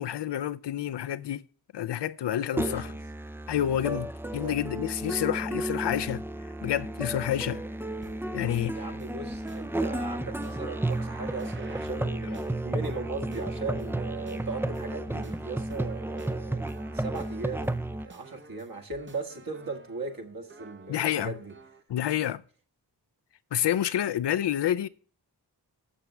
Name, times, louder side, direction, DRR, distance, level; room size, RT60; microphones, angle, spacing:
voice 1, 0.0-1.4 1.7-2.9 3.5-4.1 4.3-6.2 6.6-7.6 8.3-8.8 20.9-21.3 21.9-22.4 23.5-24.9, left 11 dB, 85° left, 0.6 m, -28 dB
voice 2, 2.5-3.0 3.6-4.0 4.4-4.6 8.7-16.7 16.9-17.8 18.0-21.5, right 3 dB, 55° right, 1.8 m, -38 dB
Musical instrument, 2.6-18.1, right 1 dB, 5° right, 0.4 m, -33 dB
sound 1, 8.0-21.8, right 4 dB, 30° right, 0.8 m, -52 dB
12.5 x 7.1 x 3.3 m
wide cardioid pair, 80°, 41 cm